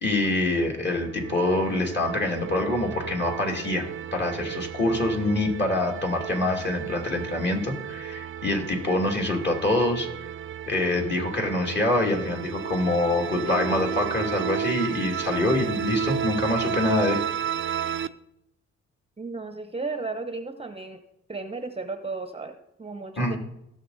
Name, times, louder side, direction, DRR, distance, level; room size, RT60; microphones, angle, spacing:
voice 1, 0.0-10.1 10.7-17.2 23.2-23.4, left 2 dB, 35° left, 1 dB, 2.5 m, -25 dB
sound 1, 0.7-18.1, right 9 dB, 40° right, 0.5 m, -33 dB
sound 2, 13.4-15.9, left 1 dB, 80° left, 4.4 m, -38 dB
voice 2, 19.2-21.0 21.3-23.4, right 3 dB, 20° right, 8 dB, 0.8 m, -34 dB
16.5 x 6.7 x 4.1 m, 0.86 s
cardioid pair, 90°, 30 cm